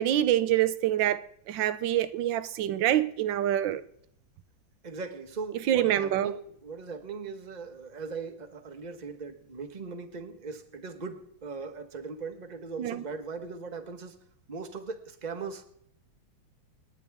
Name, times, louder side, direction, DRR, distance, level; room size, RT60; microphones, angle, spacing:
voice 1, 0.0-3.8 5.7-6.3 12.8-13.0, right 12 dB, 70° right, 1.3 m, -26 dB
voice 2, 4.8-14.2 14.5-15.6, right 4 dB, 25° right, 1.1 m, -39 dB
29.0 x 9.8 x 3.5 m
omnidirectional pair, 2.2 m